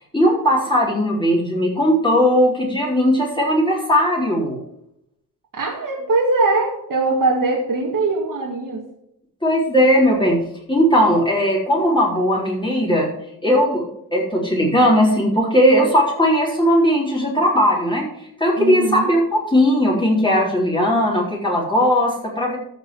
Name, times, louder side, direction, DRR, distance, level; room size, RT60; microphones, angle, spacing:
voice 1, 0.1-4.6 9.4-10.4 10.7-13.1 13.4-18.1 18.4-22.6, equal, 10° left, -4 dB, 3.9 m, -18 dB
voice 2, 5.5-8.8 18.6-19.1, right 3 dB, 60° right, -2 dB, 2.2 m, -21 dB
14.0 x 5.4 x 6.4 m, 0.79 s
cardioid pair, 95°, 38 cm